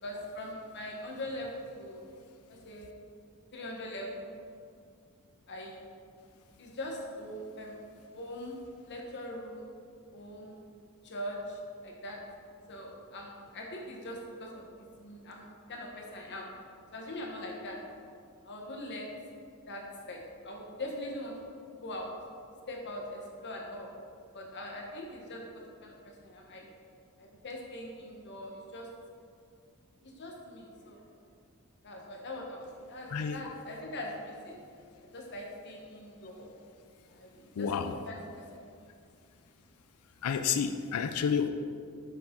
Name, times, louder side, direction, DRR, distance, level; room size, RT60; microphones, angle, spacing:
voice 1, 0.0-2.1 2.5-2.9 3.5-4.3 5.5-5.9 6.6-7.9 8.1-9.7 10.1-10.5 11.0-12.3 12.7-16.6 16.9-17.9 18.4-19.3 19.7-21.4 21.8-22.3 22.7-24.0 24.3-25.5 25.8-26.7 27.2-28.9 30.0-31.0 31.8-34.6 35.1-36.5 37.1-37.7 38.1-38.6, left 1 dB, 55° left, 0 dB, 1.1 m, -42 dB
voice 2, 33.1-33.5 37.6-38.0 40.2-41.5, left 7 dB, 85° left, 8 dB, 0.4 m, -30 dB
8.2 x 7.1 x 3.8 m, 2.3 s
head